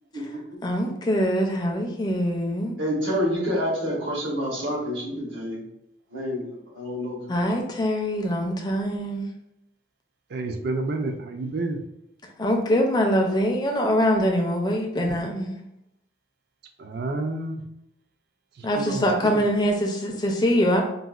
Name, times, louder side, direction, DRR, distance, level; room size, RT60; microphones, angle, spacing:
voice 1, 0.6-2.8 7.3-9.3 12.4-15.6 18.6-20.8, equal, 20° left, 2 dB, 0.4 m, -23 dB
voice 2, 2.8-5.6 6.1-7.2, equal, 75° right, -4 dB, 1.1 m, -28 dB
voice 3, 10.3-11.8 16.8-17.6 18.8-19.1, right 2 dB, 55° right, 5 dB, 0.3 m, -29 dB
3.9 x 2.0 x 2.3 m, 0.83 s
head